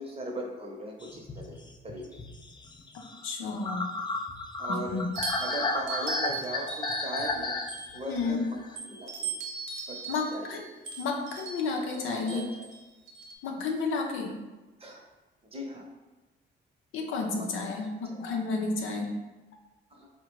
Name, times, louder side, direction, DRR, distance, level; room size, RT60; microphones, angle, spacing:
voice 1, 0.0-1.6 1.8-2.2 4.6-5.0 5.4-7.5 7.9-9.3 9.9-10.6 11.8-12.7 14.8-15.0 15.5-15.9 17.4-18.2 19.9-20.1, right 1 dB, 30° right, 0 dB, 0.8 m, -39 dB
sound 1, 1.0-8.8, left 3 dB, 25° left, 0.3 m, -34 dB
voice 2, 2.9-3.9 4.7-5.1 8.1-8.4 10.1-10.6 11.0-12.5 13.4-14.4 16.9-19.1, left 4 dB, 85° left, 2 dB, 0.5 m, -31 dB
sound 2, 5.1-8.2 8.8-13.3, right 4 dB, 75° right, 0.7 m, -39 dB
3.7 x 2.1 x 3.0 m, 1.1 s
cardioid pair, 75°, 20 cm